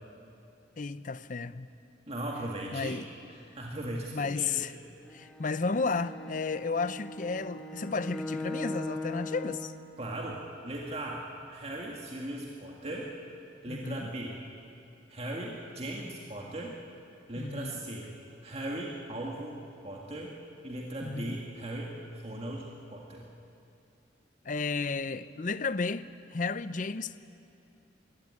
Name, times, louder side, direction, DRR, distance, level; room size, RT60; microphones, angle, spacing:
voice 1, 0.8-1.7 2.7-3.1 4.1-4.7 5.1-9.7 13.7-14.1 17.4-17.8 21.0-21.4 24.4-26.1 26.3-27.2, left 4 dB, 45° left, 0.6 m, -33 dB
voice 2, 2.1-3.0 3.5-4.6 10.0-13.1 13.6-14.4 15.1-16.8 17.3-18.1 18.4-19.6 19.8-20.4 20.6-23.3, right 1 dB, 35° right, 2.0 m, -38 dB
Bowed string instrument, 5.1-9.8, left 2 dB, 5° left, 2.4 m, -39 dB
22.5 x 16.5 x 9.8 m
head